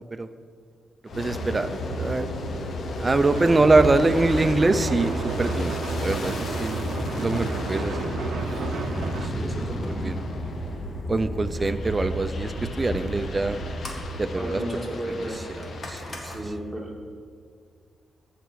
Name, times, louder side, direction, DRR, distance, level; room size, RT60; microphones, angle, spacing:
Aircraft, 1.0-11.1 11.6-16.5, left 3 dB, 60° left, 1.0 m, -37 dB
sound 1, 1.1-16.5, equal, 45° left, 2.0 m, -33 dB
voice 1, 1.2-2.3 3.0-6.8 7.1-8.1 10.0-10.1 11.1-13.6 14.1-14.6 15.6-16.2, right 2 dB, 25° right, 12 dB, 0.5 m, -24 dB
sound 2, 3.3-9.3, right 5 dB, 75° right, 0.6 m, -33 dB
voice 2, 9.2-10.1 14.3-15.5 16.2-16.9, right 1 dB, 5° right, -3 dB, 2.6 m, -33 dB
14.0 x 5.1 x 6.4 m, 2.1 s
cardioid pair, 90°, 0 cm